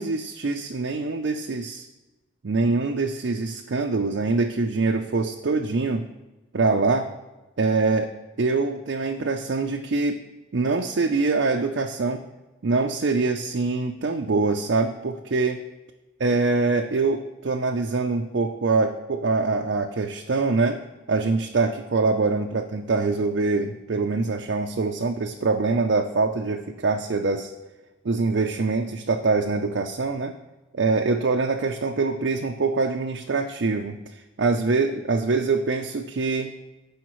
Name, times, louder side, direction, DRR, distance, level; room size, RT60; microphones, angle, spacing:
voice 1, 0.0-1.9 2.4-6.0 6.5-7.1 7.6-8.1 8.4-10.2 10.5-12.2 12.6-15.6 16.2-20.8 21.1-27.5 28.0-30.3 30.7-36.5, right 3 dB, 55° right, 3 dB, 0.5 m, -24 dB
15.0 x 5.0 x 3.1 m, 1.1 s
head